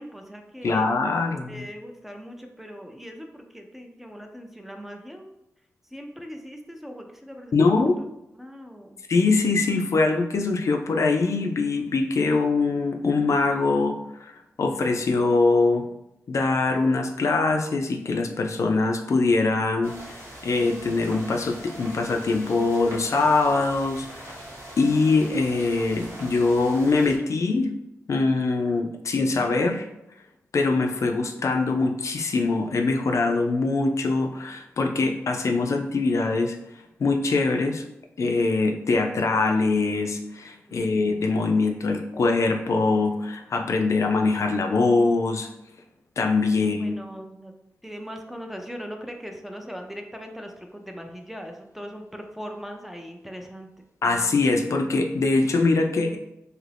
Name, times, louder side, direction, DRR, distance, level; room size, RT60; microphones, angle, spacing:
voice 1, 0.0-0.9 1.5-5.3 5.9-7.9 8.4-9.0 40.7-41.3 46.6-47.5 47.8-53.7, equal, 5° right, 3 dB, 0.4 m, -40 dB
voice 2, 0.6-1.7 7.5-8.0 9.1-13.9 14.2-14.3 14.6-15.8 16.3-24.4 24.8-27.7 28.1-29.9 30.5-36.6 37.0-37.8 38.2-45.5 46.2-47.0 54.0-56.2, left 3 dB, 65° left, 4 dB, 0.3 m, -23 dB
sound 1, 19.8-27.2, right 1 dB, 55° right, 0.9 m, -41 dB
2.7 x 2.5 x 3.3 m, 0.89 s
wide cardioid pair, 95°, 6 cm